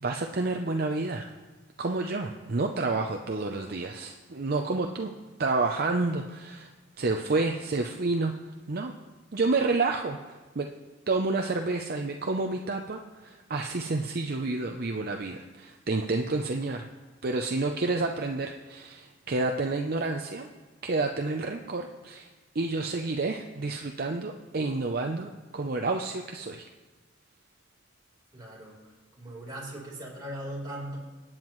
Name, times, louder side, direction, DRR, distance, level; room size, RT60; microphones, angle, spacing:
voice 1, 0.0-1.3 1.8-5.1 5.4-6.7 7.0-8.4 8.7-8.9 9.3-10.7 11.1-16.9 17.2-20.5 20.8-22.3 22.5-26.7, right 3 dB, 50° right, 4 dB, 0.6 m, -29 dB
voice 2, 28.3-28.7 29.2-31.0, right 1 dB, 20° right, -4 dB, 4.1 m, -39 dB
25.0 x 9.0 x 3.1 m, 1.3 s
head